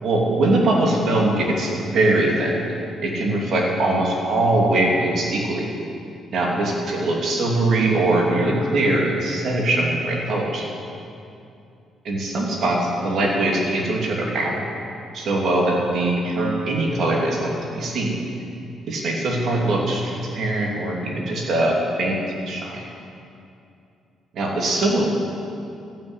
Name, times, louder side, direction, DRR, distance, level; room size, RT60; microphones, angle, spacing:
voice 1, 0.0-2.6 3.0-5.7 6.3-10.6 12.0-14.6 15.1-18.1 18.9-22.2 22.5-22.8 24.3-25.0, right 2 dB, 65° right, -2 dB, 3.0 m, -21 dB
12.5 x 9.4 x 8.3 m, 2.6 s
cardioid pair, 90°, 0 cm